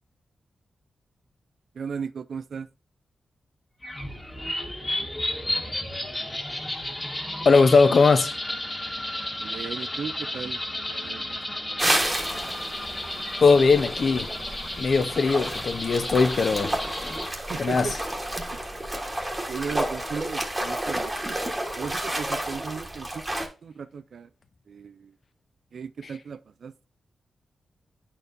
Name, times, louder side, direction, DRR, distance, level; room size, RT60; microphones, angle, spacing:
voice 1, 1.8-2.7 9.4-11.8 17.5-17.9 19.5-21.5 21.8-24.3 24.7-25.1 25.7-26.7, right 6 dB, 70° right, 0.3 m, -36 dB
sound 1, 3.8-17.3, left 1 dB, 20° left, 1.5 m, -33 dB
voice 2, 7.4-8.3 13.4-14.3 14.8-16.8 17.6-18.0, left 4 dB, 55° left, 0.7 m, -19 dB
sound 2, 11.8-23.5, right 1 dB, 15° right, 1.2 m, -31 dB
9.5 x 4.4 x 2.6 m
cardioid pair, 90°, 0 cm